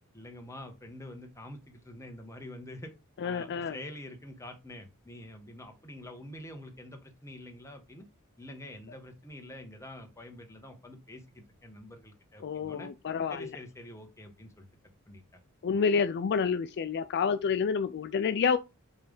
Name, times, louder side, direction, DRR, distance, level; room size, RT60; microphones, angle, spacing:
voice 1, 0.1-2.9 3.2-8.0 8.4-12.9 13.3-14.7 15.1-15.4, left 1 dB, 15° left, 1.3 m, -46 dB
voice 2, 3.2-3.8 12.4-13.5 15.6-18.6, left 6 dB, 50° left, 0.4 m, -28 dB
5.6 x 3.4 x 5.3 m
head